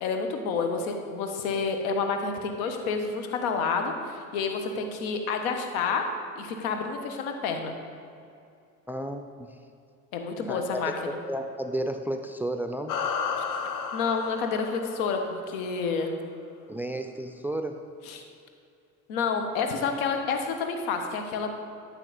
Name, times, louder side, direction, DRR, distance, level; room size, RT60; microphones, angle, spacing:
voice 1, 0.0-6.0 6.3-7.7 10.1-11.2 13.9-16.1 18.1-18.2 19.1-21.5, left 5 dB, 70° left, 5 dB, 1.2 m, -29 dB
voice 2, 8.9-9.6 10.5-12.9 16.7-17.8, right 1 dB, 5° right, 6 dB, 0.5 m, -32 dB
sound 1, 12.9-15.6, left 6 dB, 45° left, 0.9 m, -32 dB
13.0 x 6.3 x 4.1 m, 2.5 s
hypercardioid pair, 60°, 44 cm